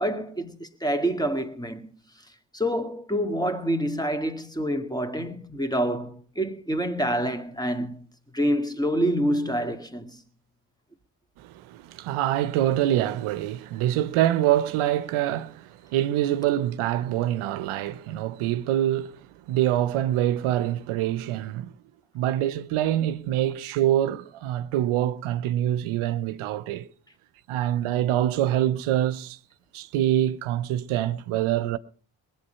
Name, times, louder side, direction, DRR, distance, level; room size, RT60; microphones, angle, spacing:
voice 1, 0.0-1.9 2.5-8.1 8.3-10.2, equal, 10° left, 2.0 m, -27 dB
voice 2, 11.4-19.1 19.5-21.7 22.1-26.9 27.5-29.4 29.7-31.8, right 12 dB, 80° right, 0.7 m, -25 dB
20.0 x 8.9 x 5.6 m
hypercardioid pair, 40°, 49 cm